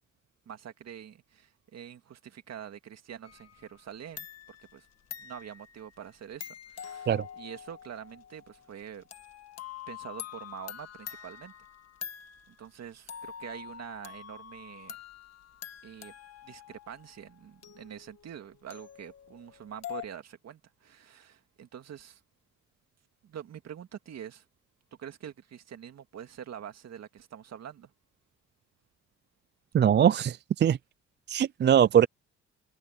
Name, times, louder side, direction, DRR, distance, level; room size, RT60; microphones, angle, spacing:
voice 1, 0.5-4.9 5.2-9.0 9.9-11.5 12.5-15.0 15.8-16.1 16.4-22.2 23.2-24.4 25.0-27.9, right 9 dB, 60° right, 2.2 m, -45 dB
sound 1, 3.2-3.9 4.2-12.7 13.1-20.0, left 9 dB, 55° left, 1.7 m, -45 dB
voice 2, 29.7-30.8 31.3-32.1, right 9 dB, 35° right, 0.4 m, -22 dB
cardioid pair, 90°, 30 cm